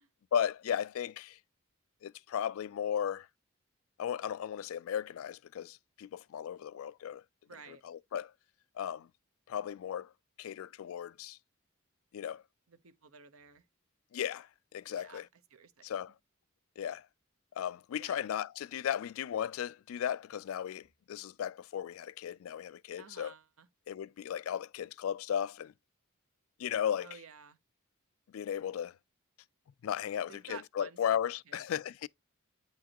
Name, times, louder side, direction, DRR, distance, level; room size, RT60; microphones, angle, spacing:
voice 1, 0.3-1.4 2.0-3.3 4.0-7.2 7.7-8.3 8.8-9.1 9.5-10.1 10.4-11.4 12.1-12.4 14.1-14.5 14.7-15.3 15.8-16.1 16.8-17.0 17.6-23.3 23.9-25.7 26.6-27.1 28.3-28.9 29.8-32.1, left 9 dB, 70° left, 0.3 m, -35 dB
voice 2, 7.5-7.8 12.7-13.6 14.9-16.1 18.0-18.2 23.0-23.7 27.0-27.6 30.3-31.2 31.5-31.6, right 6 dB, 80° right, 0.9 m, -53 dB
9.0 x 4.6 x 2.8 m
head